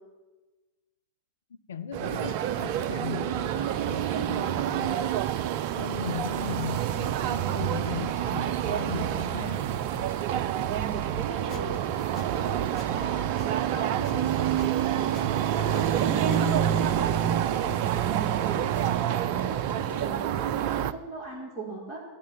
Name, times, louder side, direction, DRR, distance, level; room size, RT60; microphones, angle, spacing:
voice 1, 1.7-5.3 5.7-9.8, left 7 dB, 65° left, 0.6 m, -37 dB
sound 1, 1.9-20.9, right 11 dB, 45° right, 0.4 m, -27 dB
sound 2, 6.9-20.0, right 2 dB, 75° right, 0.8 m, -43 dB
voice 2, 10.5-11.8 12.1-22.0, right 2 dB, 15° right, 3.2 m, -38 dB
Squeak, 11.5-11.6 12.1-12.3 12.8-12.9 13.4-13.5 14.0-14.1 14.6-14.7 15.1-15.3 15.7-15.8 16.3-16.4, left 10 dB, 35° left, 1.1 m, -50 dB
13.0 x 6.2 x 9.1 m
figure-of-eight pair, 90°, 0 cm